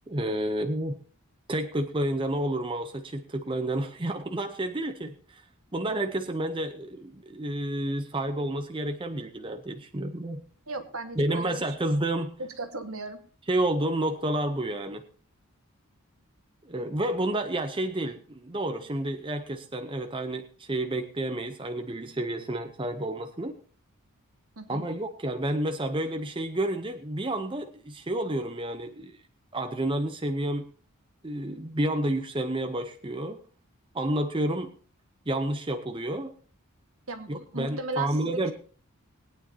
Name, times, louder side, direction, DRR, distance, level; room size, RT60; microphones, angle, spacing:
voice 1, 0.1-1.0 1.5-5.4 5.7-10.4 11.2-12.3 13.5-15.0 16.7-23.6 24.7-29.2 29.5-30.6 31.2-33.4 33.9-34.7 35.3-36.3 37.3-38.5, right 1 dB, 25° right, 6 dB, 0.7 m, -30 dB
voice 2, 10.7-11.8 12.4-13.2 24.6-24.9 37.1-38.5, right 2 dB, 70° right, 6 dB, 1.6 m, -36 dB
20.5 x 9.5 x 2.8 m, 0.40 s
head